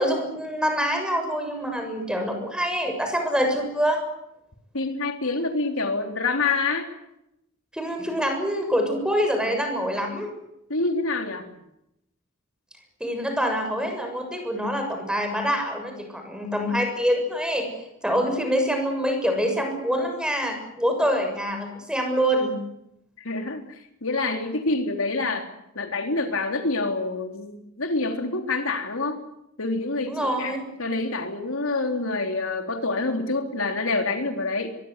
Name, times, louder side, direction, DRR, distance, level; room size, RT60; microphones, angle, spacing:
voice 1, 0.0-4.0 7.7-10.3 13.0-17.7 18.0-22.6 30.1-30.7, equal, 5° right, 4 dB, 7.1 m, -25 dB
voice 2, 4.7-6.9 10.7-11.4 23.2-23.6 24.0-25.5 25.8-29.2 29.6-30.5 30.8-34.8, left 3 dB, 80° left, 5 dB, 3.6 m, -26 dB
24.0 x 23.0 x 8.2 m, 0.82 s
head